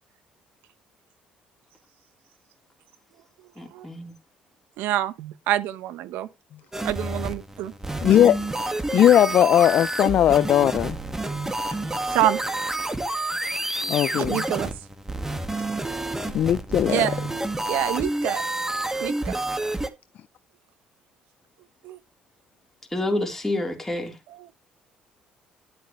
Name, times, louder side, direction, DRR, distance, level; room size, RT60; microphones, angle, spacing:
voice 1, 3.6-4.1 22.9-24.1, left 1 dB, 10° left, 3.8 m, -28 dB
voice 2, 4.8-6.3 6.8-7.7 12.1-12.4 14.0-14.7 16.9-17.2 17.7-18.4 19.0-19.3 21.8-22.0 24.3-24.5, right 13 dB, 80° right, 0.9 m, -26 dB
sound 1, 6.7-19.9, right 2 dB, 15° right, 1.8 m, -29 dB
voice 3, 8.0-8.4 8.9-11.0 13.9-14.4 16.3-17.0, left 11 dB, 60° left, 0.5 m, -18 dB
11.0 x 8.2 x 3.2 m
supercardioid pair, 75°, 3 cm